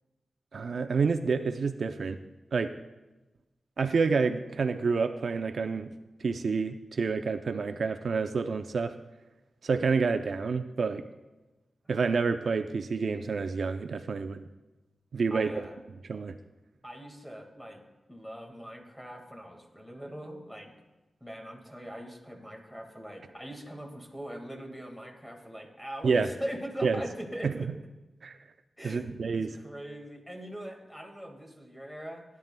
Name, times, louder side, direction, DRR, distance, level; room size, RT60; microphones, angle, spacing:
voice 1, 0.5-2.2 2.5-2.7 3.8-5.9 6.2-8.9 9.6-11.0 11.9-14.5 15.1-15.5 16.0-16.3 26.0-26.3 26.8-27.0 27.4-27.5 28.2-28.4 28.8-29.5, right 5 dB, 65° right, 8 dB, 0.4 m, -28 dB
voice 2, 15.3-15.7 16.8-17.8 18.1-20.7 21.2-27.7 28.8-32.2, equal, 5° left, 2 dB, 1.8 m, -41 dB
16.5 x 10.5 x 2.2 m, 1.1 s
wide cardioid pair, 115°, 0 cm